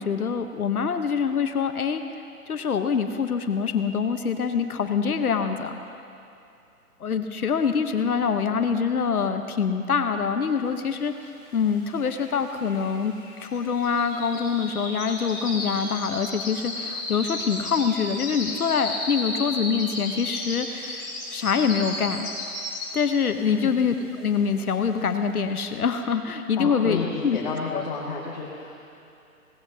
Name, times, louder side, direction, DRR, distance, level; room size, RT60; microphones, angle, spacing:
voice 1, 0.0-2.0 2.5-5.8 7.0-11.1 11.5-13.1 13.4-22.3 22.9-27.4 27.7-27.8, left 6 dB, 70° left, 7 dB, 1.0 m, -25 dB
sound 1, 11.4-11.5 11.7-23.2 23.6-23.9 24.3-24.4, left 2 dB, 10° left, 1.8 m, -34 dB
voice 2, 26.6-28.8, left 5 dB, 30° left, -4 dB, 1.5 m, -31 dB
17.5 x 17.0 x 2.8 m, 2.7 s
hypercardioid pair, 155°, 45 cm